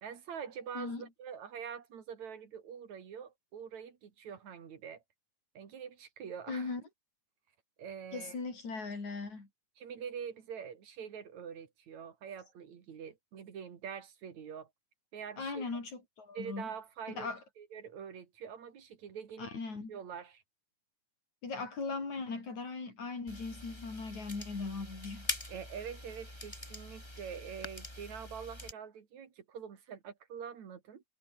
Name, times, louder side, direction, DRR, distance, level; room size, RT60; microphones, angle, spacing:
voice 1, 0.0-5.0 5.6-6.7 7.8-8.4 9.8-14.7 15.1-15.7 16.4-17.3 17.6-19.5 19.9-20.4 25.5-31.0, right 7 dB, 75° right, 3.7 m, -45 dB
voice 2, 0.8-1.1 6.5-6.8 8.1-9.5 15.4-16.7 17.2-17.4 19.4-20.0 21.4-25.3, left 4 dB, 75° left, 7.6 m, -39 dB
sound 1, 23.3-28.7, left 1 dB, 10° left, 5.3 m, -44 dB
omnidirectional pair, 3.3 m